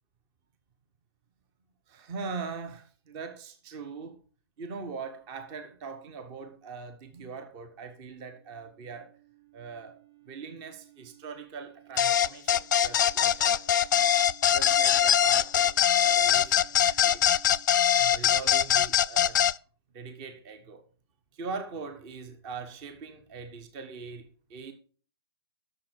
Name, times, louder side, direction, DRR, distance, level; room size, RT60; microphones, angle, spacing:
voice 1, 1.9-4.2 4.6-9.1 9.5-9.9 10.3-13.6 14.5-17.2 17.9-19.4 19.9-20.8 21.3-24.7, right 4 dB, 25° right, 1.3 m, -41 dB
sound 1, 7.4-17.7, right 18 dB, 75° right, 2.9 m, -57 dB
sound 2, 12.0-19.5, left 10 dB, 50° left, 0.4 m, -22 dB
11.5 x 6.8 x 4.6 m
figure-of-eight pair, 125°, 13 cm